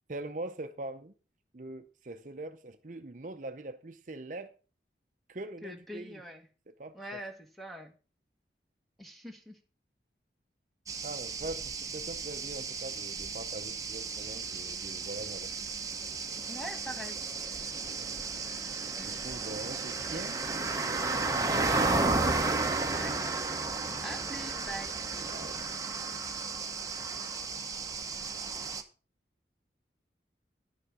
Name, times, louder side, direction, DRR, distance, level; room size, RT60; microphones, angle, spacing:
voice 1, 0.1-1.1 1.5-4.5 5.3-6.2 6.8-7.0 11.0-15.5 19.0-20.4 22.8-23.2 25.3-25.6, right 2 dB, 45° right, 0.7 m, -42 dB
voice 2, 5.6-6.5 6.9-7.9 9.0-9.6 16.5-17.2 18.9-19.2 22.9-23.1 24.0-25.0, right 1 dB, ahead, 1.3 m, -43 dB
sound 1, 10.9-28.8, right 3 dB, 20° right, 0.9 m, -33 dB
10.5 x 6.5 x 6.0 m
head